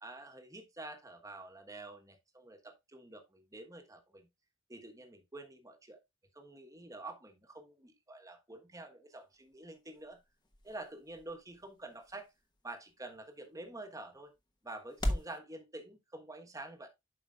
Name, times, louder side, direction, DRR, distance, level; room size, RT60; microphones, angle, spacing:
voice 1, 0.0-4.3 4.7-6.0 6.3-10.2 10.6-12.3 12.6-14.3 14.6-16.9, right 2 dB, 15° right, 1.2 m, -48 dB
sound 1, 9.1-15.4, equal, 20° left, 1.0 m, -42 dB
11.5 x 5.0 x 2.4 m
head